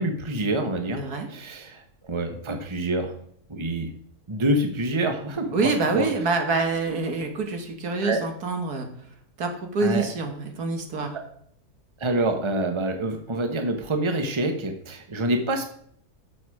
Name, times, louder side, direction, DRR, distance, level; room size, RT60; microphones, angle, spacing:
voice 1, 0.0-1.0 1.3-3.1 3.5-3.9 4.3-6.1 7.9-8.2 9.8-10.0 12.0-15.7, right 1 dB, 20° right, 5 dB, 1.2 m, -26 dB
voice 2, 1.0-1.3 5.5-8.9 9.4-11.2, right 3 dB, 75° right, 5 dB, 2.0 m, -26 dB
10.5 x 7.1 x 4.9 m, 0.64 s
omnidirectional pair, 1.6 m